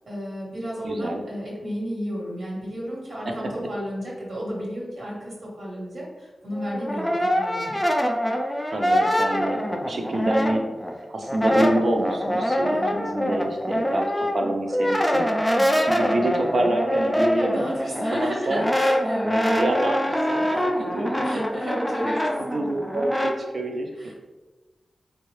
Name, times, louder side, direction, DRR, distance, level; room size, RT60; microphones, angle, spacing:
voice 1, 0.1-7.8 12.7-13.0 15.5-15.7 17.4-19.4 20.5-20.9 21.2-22.4 24.0-24.1, equal, 70° right, -5 dB, 1.2 m, -32 dB
voice 2, 0.8-1.2 3.3-3.4 8.7-10.6 11.1-15.2 15.8-17.5 18.1-18.6 19.2-21.1 22.0-23.9, right 1 dB, 55° right, 2 dB, 0.5 m, -27 dB
Brass instrument, 6.5-10.9 11.2-23.4, equal, 5° left, 0.3 m, -24 dB
3.8 x 2.4 x 3.1 m, 1.2 s
wide cardioid pair, 120°, 0 cm